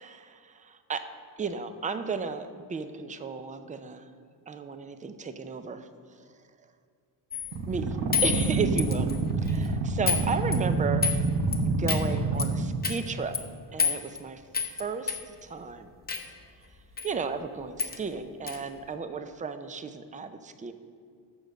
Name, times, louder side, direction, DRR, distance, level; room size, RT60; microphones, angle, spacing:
voice 1, 0.1-1.1 1.4-4.1 4.5-5.9 7.7-8.0 8.2-9.1 9.4-11.1 11.7-13.3 13.7-14.4 14.8-15.9 17.0-20.7, right 5 dB, 20° right, 9 dB, 0.5 m, -34 dB
sound 1, 7.3-7.5 8.1-9.2 9.4-9.7 10.1-10.2 10.5-11.2 11.5-11.6 11.9-12.0 12.4-12.5 12.8-13.0 13.3-13.4 13.8-14.2 14.5-14.8 15.1-15.2 16.1-16.3 17.0-17.1 17.4-17.5 17.8-18.0 18.5-18.6, left 6 dB, 20° left, 0.8 m, -28 dB
sound 2, 7.5-12.8, right 3 dB, 70° right, 1.1 m, -27 dB
7.1 x 6.3 x 6.4 m, 2.2 s
cardioid pair, 110°, 43 cm